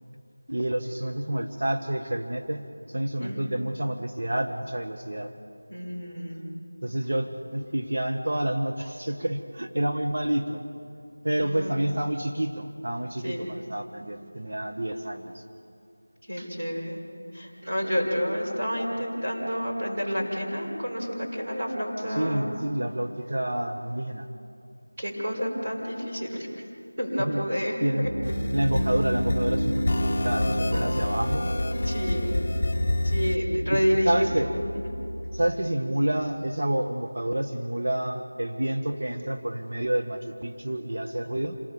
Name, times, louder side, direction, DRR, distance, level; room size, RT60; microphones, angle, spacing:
voice 1, 0.5-5.3 6.8-10.6 11.2-15.4 16.4-16.5 22.1-24.3 27.2-27.5 27.8-28.1 28.5-31.6 33.7-34.5 35.3-41.6, right 1 dB, 50° right, 4 dB, 1.4 m, -29 dB
voice 2, 5.7-6.5 11.4-11.8 13.2-13.5 16.3-17.0 17.3-22.6 25.0-26.5 27.0-28.1 31.8-32.4 33.0-34.6 34.9-35.0, equal, 20° right, -8 dB, 5.4 m, -29 dB
Piano, 28.0-35.5, equal, 85° right, 1.6 m, -30 dB
sound 1, 28.2-33.4, left 2 dB, 25° left, 1.1 m, -29 dB
28.0 x 19.0 x 7.1 m, 2.5 s
figure-of-eight pair, 175°, 0 cm